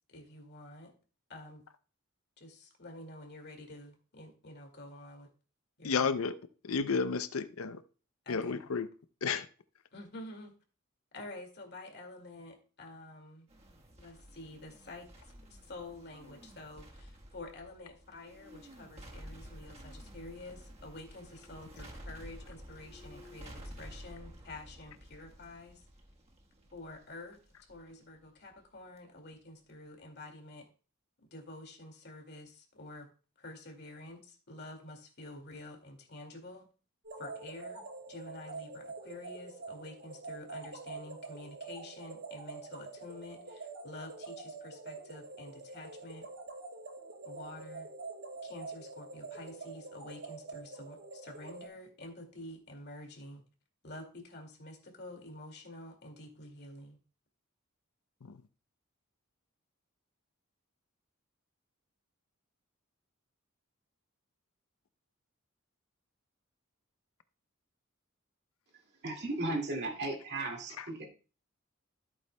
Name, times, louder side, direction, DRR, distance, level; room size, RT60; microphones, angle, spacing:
voice 1, 0.1-0.9 1.3-1.6 2.4-5.3 5.8-6.1 8.3-8.6 9.9-10.5 11.1-13.5 14.0-15.1 15.5-25.9 26.7-27.4 27.7-30.7 31.3-33.1 33.4-36.7 37.2-46.3 47.2-47.9 48.4-53.4 53.8-57.0, left 2 dB, 55° left, 2.2 m, -49 dB
voice 2, 5.8-6.4 6.6-7.8 8.3-8.9 9.2-9.5 58.2-58.4 70.8-70.9, left 5 dB, 85° left, 0.6 m, -32 dB
sound 1, 13.5-29.0 29.3-29.4, equal, 30° right, 1.4 m, -51 dB
sound 2, 37.0-51.7, right 3 dB, 75° right, 3.8 m, -46 dB
voice 3, 69.0-71.1, right 2 dB, 55° right, 2.3 m, -35 dB
14.0 x 8.4 x 2.2 m
head